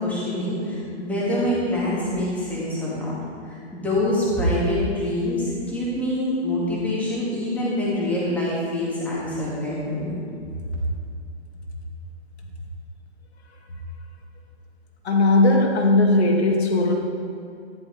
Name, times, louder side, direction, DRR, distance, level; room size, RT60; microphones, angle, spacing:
voice 1, 0.0-3.1 3.4-10.1, left 1 dB, 5° left, -7 dB, 2.2 m, -25 dB
voice 2, 15.0-16.9, left 2 dB, 65° left, 1 dB, 2.4 m, -18 dB
13.5 x 10.5 x 4.8 m, 2.6 s
hypercardioid pair, 170°, 34 cm